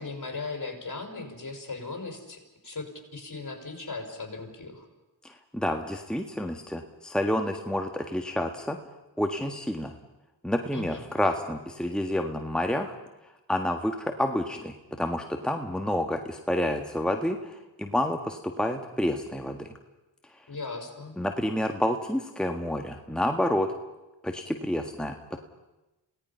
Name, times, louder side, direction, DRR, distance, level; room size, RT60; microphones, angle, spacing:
voice 1, 0.0-4.9 10.7-11.0 20.5-21.1, left 3 dB, 45° left, 3 dB, 5.5 m, -38 dB
voice 2, 5.5-8.8 9.2-9.9 10.4-12.9 13.5-19.7 21.2-23.7 24.2-25.4, left 1 dB, ahead, 4 dB, 1.7 m, -29 dB
27.0 x 18.0 x 5.7 m, 1.0 s
cardioid pair, 55°, 43 cm